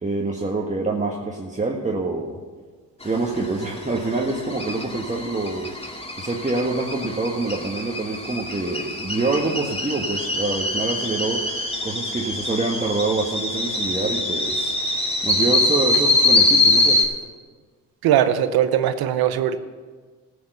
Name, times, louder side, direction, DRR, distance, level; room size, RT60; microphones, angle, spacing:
voice 1, 0.0-2.4 3.0-5.7 6.2-17.1, right 3 dB, 20° right, -1 dB, 1.6 m, -26 dB
sound 1, 3.0-17.0, left 2 dB, 15° left, 2.3 m, -24 dB
voice 2, 18.0-19.6, right 10 dB, 80° right, 11 dB, 0.9 m, -20 dB
14.0 x 7.1 x 6.7 m, 1.4 s
supercardioid pair, 60°, 36 cm